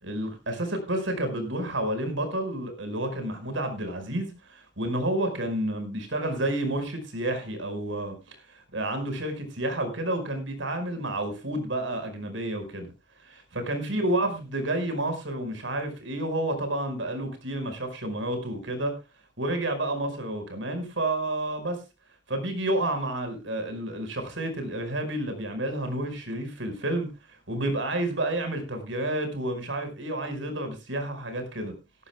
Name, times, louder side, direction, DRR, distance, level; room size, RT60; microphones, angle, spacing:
voice 1, 0.0-12.9 13.3-19.0 19.4-21.8 22.3-31.8, right 1 dB, 80° right, 5.2 m, -30 dB
18.5 x 14.0 x 2.3 m
head